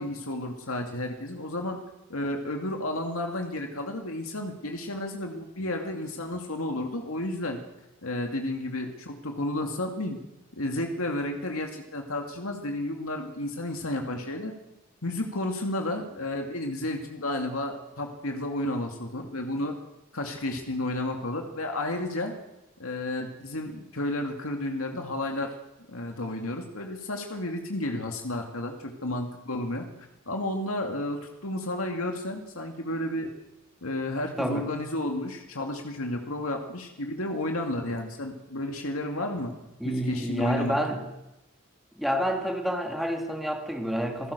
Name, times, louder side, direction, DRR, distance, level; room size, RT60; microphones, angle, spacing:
voice 1, 0.0-1.8 2.1-7.6 8.0-10.2 10.5-14.5 15.0-19.8 20.1-22.3 22.8-25.5 25.9-33.3 33.8-39.5 39.8-40.8, left 1 dB, 80° left, 3 dB, 2.5 m, -32 dB
voice 2, 39.8-41.0 42.0-44.3, equal, ahead, 2 dB, 3.2 m, -29 dB
28.5 x 16.0 x 6.9 m, 0.96 s
head